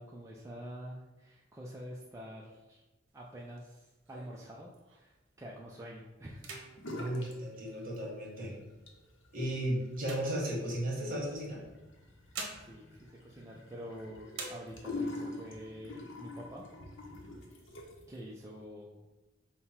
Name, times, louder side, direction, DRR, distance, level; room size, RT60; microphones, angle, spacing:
voice 1, 0.0-2.8 3.1-6.5 12.6-16.6 18.1-19.0, equal, 15° right, -3 dB, 0.4 m, -47 dB
sound 1, 3.1-5.3 5.7-6.0 6.3-8.2 8.9-11.0 11.9-14.0 14.3-15.2 15.6-15.7 16.0-16.6 17.1-18.0, right 3 dB, 70° right, 0.8 m, -49 dB
sound 2, 6.8-7.4 7.6-8.3 8.7-18.1, left 2 dB, 70° left, 0.8 m, -45 dB
voice 2, 6.9-8.6 9.3-11.6, right 1 dB, 45° right, -2 dB, 1.4 m, -35 dB
5.5 x 2.2 x 4.3 m, 1.1 s
head